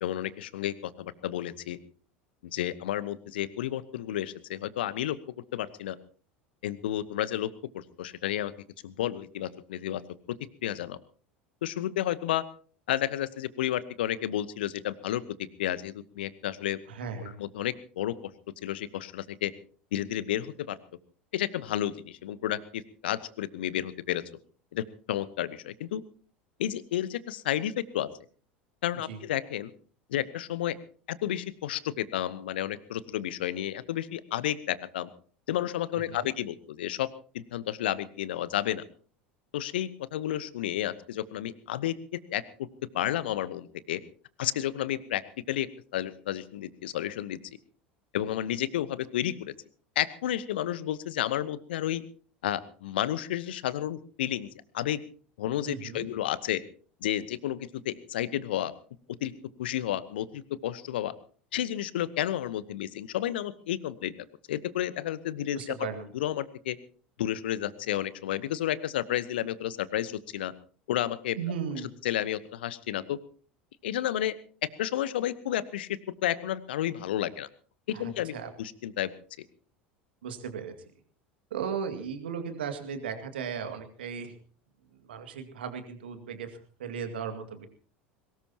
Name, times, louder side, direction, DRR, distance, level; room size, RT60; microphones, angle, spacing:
voice 1, 0.0-1.8 2.5-5.2 5.5-6.0 6.6-7.5 7.7-8.5 8.8-10.0 10.6-11.0 11.6-12.4 12.9-15.2 15.6-16.8 17.2-18.1 18.6-19.5 19.9-20.8 21.3-24.2 24.7-26.0 26.6-28.1 28.8-29.7 30.1-30.8 31.1-35.1 35.5-37.1 37.3-38.8 39.5-41.9 42.3-42.7 42.9-44.0 44.4-45.2 45.5-47.4 48.1-49.5 49.9-52.0 52.4-54.5 54.7-55.0 55.4-56.6 57.0-58.7 59.2-59.3 59.6-61.1 61.5-64.1 64.5-65.7 66.1-66.8 67.2-70.5 70.9-71.4 72.0-73.2 73.8-74.4 74.8-75.9 76.2-77.5 77.9-79.1 79.4-79.5, left 12 dB, 65° left, 17 dB, 1.0 m, -31 dB
voice 2, 16.9-17.4 29.1-29.2 35.9-36.3 55.6-56.1 65.5-66.1 71.4-71.9 77.9-78.5 80.2-80.7 81.5-84.3 84.9-87.7, right 6 dB, 70° right, 7 dB, 2.2 m, -36 dB
22.5 x 19.0 x 2.9 m, 0.42 s
figure-of-eight pair, 75°, 6 cm